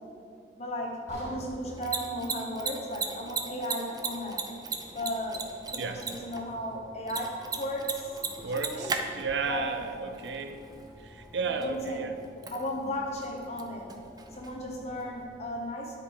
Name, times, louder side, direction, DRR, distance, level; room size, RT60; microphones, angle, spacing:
voice 1, 0.6-4.5 4.9-8.1 8.5-8.9 9.5-9.8 11.5-12.0 12.5-13.9 14.3-16.0, equal, 35° left, 0 dB, 1.2 m, -35 dB
sound 1, 1.1-5.1 5.5-5.7 6.2-6.3, right 1 dB, 40° right, 1.4 m, -48 dB
Mechanisms, 1.6-15.2, right 5 dB, 20° right, 0.5 m, -39 dB
sound 2, 4.0-15.4, equal, 20° left, 2.3 m, -54 dB
voice 2, 8.4-10.6 11.0-12.2, right 4 dB, 85° right, 7 dB, 0.6 m, -33 dB
10.0 x 5.3 x 4.8 m, 2.4 s
head